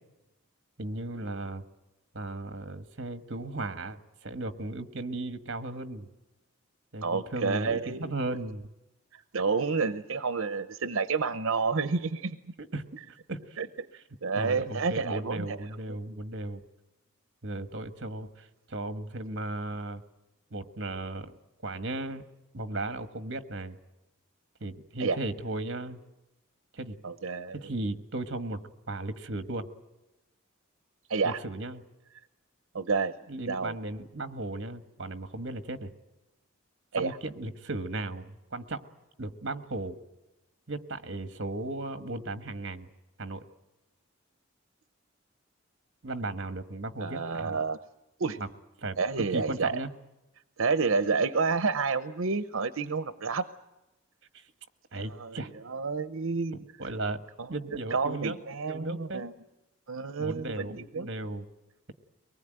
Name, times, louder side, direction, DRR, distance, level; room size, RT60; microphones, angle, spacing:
voice 1, 0.8-1.6 2.1-6.1 6.9-8.7 12.6-13.6 14.4-16.6 17.4-20.0 20.5-21.3 21.6-22.2 22.5-23.8 24.6-26.0 26.7-27.0 27.5-29.7 31.2-31.8 33.3-35.9 36.9-38.8 39.2-40.0 40.7-42.9 43.2-43.4 46.0-47.6 48.4-48.5 48.8-49.9 54.3-54.4 54.9-55.5 56.8-57.2 57.5-58.4 58.7-59.2 60.2-61.5, right 2 dB, 55° right, 10 dB, 1.5 m, -36 dB
voice 2, 7.0-8.1 9.3-12.4 13.6-13.7 14.2-15.6 15.9-16.0 25.0-25.2 27.0-27.6 31.1-31.4 32.7-33.1 33.5-33.7 36.9-37.2 47.0-47.8 48.2-48.4 49.0-49.7 50.6-53.5 54.9-56.6 57.4-57.5 57.9-59.3 59.9-61.1, right 4 dB, 80° right, 12 dB, 0.8 m, -29 dB
23.5 x 19.5 x 9.0 m, 0.99 s
head